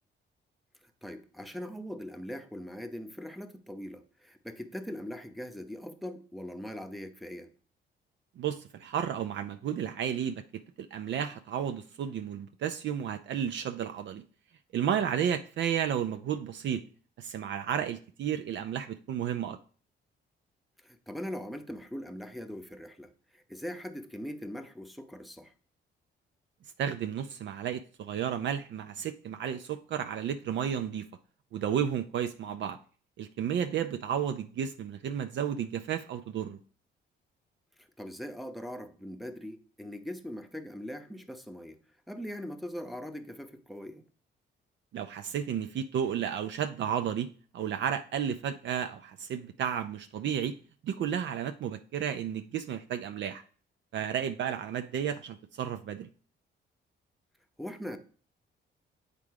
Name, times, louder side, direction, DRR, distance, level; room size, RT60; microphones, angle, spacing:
voice 1, 0.8-7.5 20.8-25.5 37.8-41.8 42.1-44.0 57.6-58.0, equal, ahead, 0.8 m, -41 dB
voice 2, 8.4-10.4 10.8-14.2 14.7-16.8 17.2-19.6 26.8-31.1 31.5-32.8 33.2-36.6 44.9-47.3 47.5-50.6 50.8-53.4 53.9-56.1, right 9 dB, 65° right, 0.5 m, -32 dB
8.2 x 3.7 x 4.7 m
cardioid pair, 90°, 20 cm